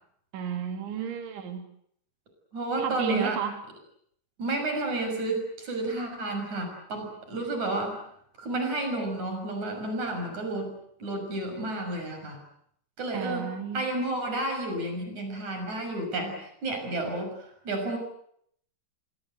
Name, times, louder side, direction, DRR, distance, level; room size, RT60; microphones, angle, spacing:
voice 1, 0.3-1.6 2.8-3.5 13.1-13.8, right 8 dB, 90° right, 6 dB, 5.5 m, -32 dB
voice 2, 2.5-3.4 4.4-8.0 8.4-10.7 11.0-12.4 13.0-18.0, right 2 dB, 40° right, 5 dB, 7.5 m, -31 dB
25.5 x 23.5 x 8.1 m, 0.68 s
omnidirectional pair, 5.2 m